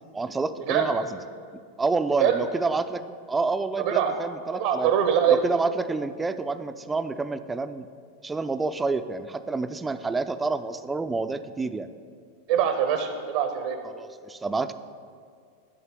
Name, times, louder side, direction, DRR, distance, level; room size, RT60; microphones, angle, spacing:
voice 1, 0.1-1.2 1.8-3.0 3.3-4.9 5.3-7.9 8.2-11.9 13.9-14.7, right 3 dB, 10° right, 11 dB, 0.4 m, -28 dB
voice 2, 3.8-4.1 4.5-5.4 12.5-13.8, right 9 dB, 50° right, 6 dB, 0.7 m, -23 dB
11.5 x 4.1 x 6.8 m, 2.2 s
figure-of-eight pair, 90°, 0 cm